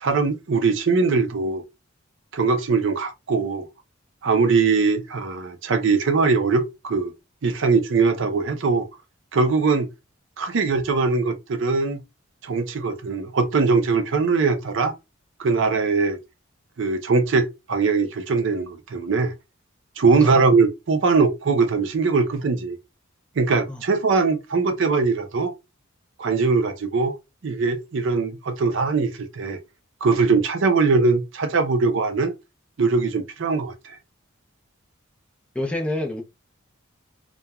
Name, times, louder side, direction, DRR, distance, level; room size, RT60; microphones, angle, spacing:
voice 1, 0.0-1.6 2.3-3.6 4.2-7.1 7.4-8.9 9.3-9.9 10.4-12.0 12.4-14.9 15.4-16.2 16.8-19.3 20.0-22.8 23.4-25.5 26.2-27.1 27.4-29.6 30.0-32.3 32.8-34.0, right 4 dB, 60° right, 0.5 m, -21 dB
voice 2, 35.6-36.2, left 1 dB, 5° left, 0.4 m, -26 dB
2.9 x 2.2 x 2.3 m
head